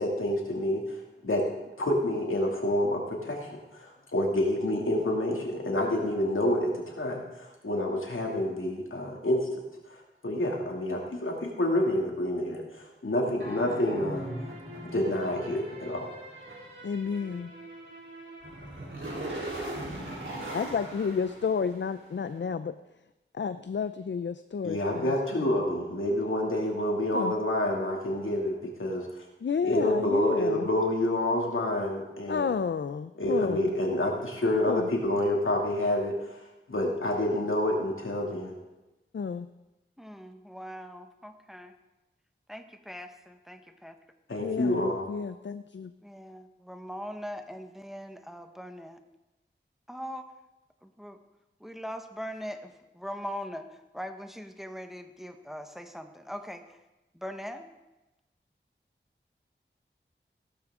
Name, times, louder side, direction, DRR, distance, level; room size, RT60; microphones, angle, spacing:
voice 1, 0.0-1.5 1.8-9.6 9.9-14.3 14.8-16.1 24.6-29.2 29.6-32.5 33.2-36.4 36.7-38.6 44.3-45.1, left 1 dB, 90° left, 0 dB, 2.5 m, -28 dB
sound 1, 13.4-22.1, right 1 dB, 80° right, 3.5 m, -40 dB
voice 2, 16.8-17.5 20.5-22.8 23.3-25.4 27.1-27.3 29.4-30.7 32.3-33.7 34.7-34.9 39.1-39.5 44.4-45.9, left 6 dB, 65° left, 11 dB, 0.5 m, -31 dB
voice 3, 40.0-41.7 42.5-43.9 46.0-49.0 49.9-50.2 50.8-51.2 51.6-56.6 57.1-57.7, equal, ahead, 6 dB, 1.2 m, -41 dB
16.0 x 12.0 x 3.7 m, 1.0 s
wide cardioid pair, 60°, 20 cm